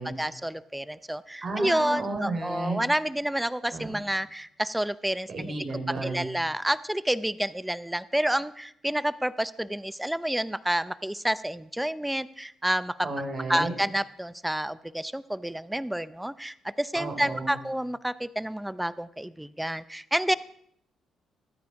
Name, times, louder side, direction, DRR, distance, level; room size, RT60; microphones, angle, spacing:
voice 1, 0.2-5.5 6.0-13.1 13.5-20.3, right 1 dB, 5° right, 17 dB, 0.5 m, -29 dB
voice 2, 1.4-2.8 3.7-4.0 5.3-6.2 13.0-13.7 16.9-17.6, right 2 dB, 45° right, 4 dB, 4.1 m, -32 dB
22.5 x 9.4 x 4.8 m, 0.70 s
cardioid pair, 90°, 0 cm